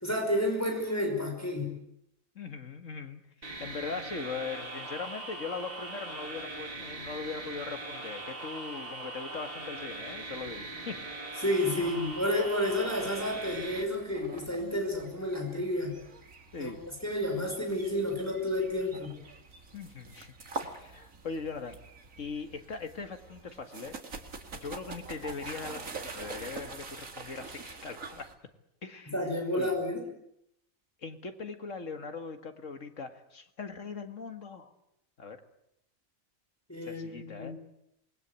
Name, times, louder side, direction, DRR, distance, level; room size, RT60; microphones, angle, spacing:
voice 1, 0.0-1.7 11.4-16.0 16.6-16.7 17.0-19.2 29.1-30.0 36.7-37.5, left 1 dB, 10° left, 1 dB, 5.3 m, -30 dB
voice 2, 2.4-11.0 11.8-12.0 14.6-14.8 16.5-16.8 19.7-20.3 20.6-21.8 22.2-24.0 24.5-28.3 28.8-29.1 29.5-29.8 31.0-34.7 35.2-35.4 36.8-37.5, left 4 dB, 65° left, 7 dB, 2.2 m, -40 dB
sound 1, 3.4-13.8, right 2 dB, 45° right, 3.0 m, -41 dB
sound 2, 11.8-28.3, right 4 dB, 80° right, 2.4 m, -46 dB
27.0 x 20.5 x 8.3 m, 0.80 s
omnidirectional pair, 1.4 m